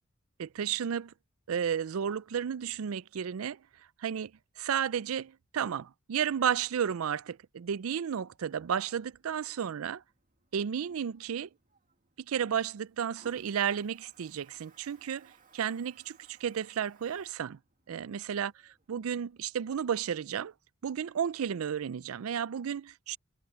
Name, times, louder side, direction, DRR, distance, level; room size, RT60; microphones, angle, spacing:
voice 1, 0.4-1.1 1.5-3.6 4.0-4.3 4.6-10.0 10.5-11.5 12.3-17.6 17.9-20.5 20.8-23.2, right 8 dB, 85° right, 0.4 m, -33 dB
Toilet flush, 8.2-19.7, right 3 dB, 40° right, 2.2 m, -65 dB
head